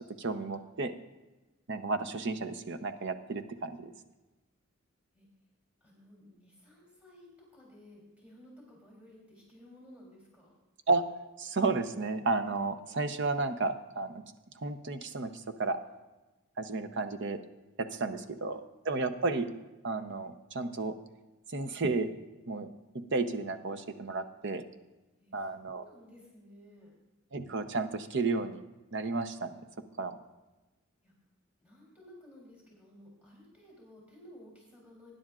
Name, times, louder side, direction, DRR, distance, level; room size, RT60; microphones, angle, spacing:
voice 1, 0.2-0.9 1.7-3.9 10.9-11.0 11.4-14.2 14.6-15.8 16.6-17.4 17.8-19.5 19.8-20.9 21.5-22.1 22.5-22.7 22.9-24.6 25.3-25.8 27.3-28.6 28.9-29.5 30.0-30.2, right 3 dB, 60° right, 9 dB, 0.7 m, -32 dB
voice 2, 5.8-10.5 18.1-18.7 25.2-27.0 31.0-31.1 31.6-35.1, left 1 dB, 5° right, -3 dB, 3.3 m, -56 dB
20.0 x 10.0 x 2.4 m, 1.1 s
head